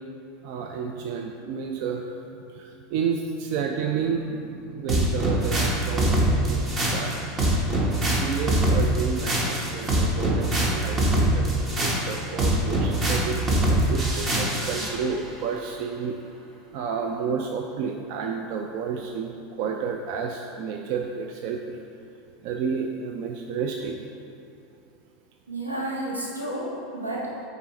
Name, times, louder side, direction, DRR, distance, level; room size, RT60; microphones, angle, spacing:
voice 1, 0.4-2.3 2.5-7.5 8.2-16.2 16.7-21.8 22.4-24.0, right 6 dB, 55° right, 3 dB, 0.3 m, -31 dB
sound 1, 4.9-15.0, right 1 dB, 30° right, 1.1 m, -23 dB
voice 2, 25.5-27.4, right 1 dB, 85° right, -4 dB, 1.0 m, -31 dB
8.8 x 4.0 x 3.0 m, 2.7 s
figure-of-eight pair, 80°, 0 cm